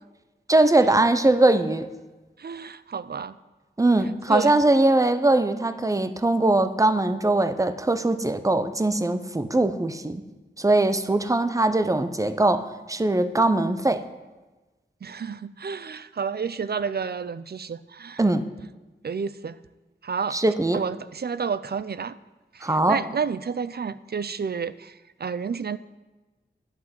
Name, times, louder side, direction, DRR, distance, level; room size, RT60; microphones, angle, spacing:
voice 1, 0.5-1.9 3.8-10.2 10.6-14.0 18.2-18.4 20.3-20.8 22.6-23.0, right 2 dB, 15° right, 10 dB, 0.6 m, -21 dB
voice 2, 2.4-3.4 4.3-4.5 15.0-18.2 19.0-19.6 20.0-20.4 20.7-22.2 22.5-25.8, right 6 dB, 55° right, 15 dB, 0.4 m, -30 dB
11.0 x 5.6 x 7.8 m, 1.2 s
wide cardioid pair, 70°, 19 cm